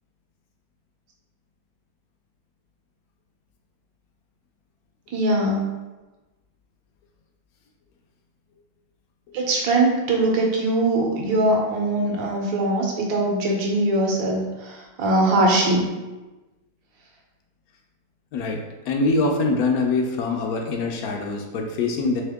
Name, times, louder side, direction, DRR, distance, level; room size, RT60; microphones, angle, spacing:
voice 1, 5.1-5.7 9.3-15.8, right 2 dB, 85° right, 0 dB, 1.6 m, -21 dB
voice 2, 18.3-22.2, left 3 dB, 70° left, 2 dB, 0.9 m, -24 dB
3.6 x 3.5 x 3.4 m, 1.1 s
omnidirectional pair, 2.0 m